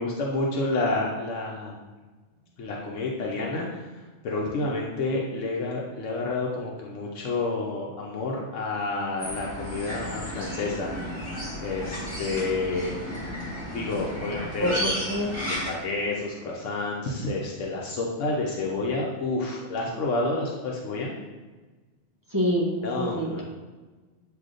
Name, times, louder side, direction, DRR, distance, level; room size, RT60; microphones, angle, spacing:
voice 1, 0.0-1.8 2.6-3.8 4.2-10.9 11.6-12.9 13.7-14.8 15.4-21.1 22.8-23.4, left 2 dB, 85° left, -2 dB, 1.0 m, -29 dB
sound 1, 9.2-15.7, equal, 10° left, 1.4 m, -33 dB
voice 2, 14.4-15.3 22.3-23.3, equal, 25° right, -4 dB, 0.5 m, -27 dB
7.8 x 2.7 x 2.5 m, 1.3 s
omnidirectional pair, 1.2 m